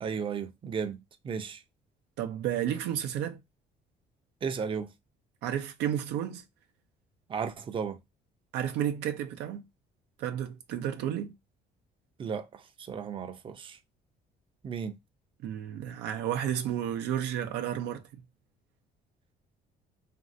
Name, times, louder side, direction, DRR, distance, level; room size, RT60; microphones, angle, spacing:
voice 1, 0.0-1.6 4.4-4.9 7.3-8.0 12.2-12.5 12.9-13.8 14.6-15.0, right 6 dB, 30° right, 0.5 m, -34 dB
voice 2, 2.2-3.4 5.4-6.4 8.5-9.7 10.2-11.3 15.4-18.0, right 10 dB, 85° right, 0.5 m, -32 dB
3.1 x 2.6 x 2.5 m
cardioid pair, 110°, 17 cm